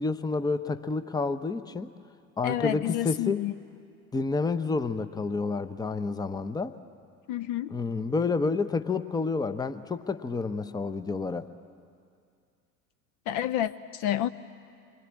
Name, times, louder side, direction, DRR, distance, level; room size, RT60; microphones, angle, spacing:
voice 1, 0.0-1.9 2.4-3.4 4.1-6.7 7.7-11.5, left 4 dB, 10° left, 11 dB, 0.8 m, -29 dB
voice 2, 2.4-3.5 7.3-7.8 13.3-14.3, left 12 dB, 40° left, 14 dB, 0.7 m, -29 dB
27.5 x 22.5 x 8.6 m, 2.4 s
figure-of-eight pair, 70°, 45 cm